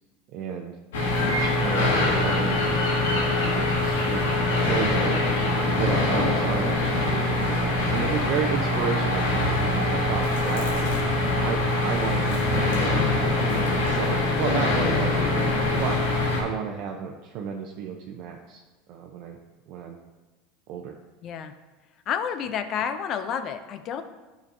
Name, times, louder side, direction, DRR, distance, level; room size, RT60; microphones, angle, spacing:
voice 1, 0.3-0.8 1.2-2.7 3.1-5.2 5.8-10.7 11.4-13.0 13.5-18.6 18.9-19.4 19.7-20.0 20.7-20.9, right 6 dB, 60° right, 1 dB, 0.6 m, -32 dB
sound 1, 0.9-16.4, left 2 dB, 85° left, 1.3 m, -23 dB
voice 2, 21.2-21.5 22.1-24.0, left 8 dB, 45° left, 10 dB, 0.5 m, -30 dB
9.0 x 5.1 x 2.7 m, 1.2 s
hypercardioid pair, 100°, 0 cm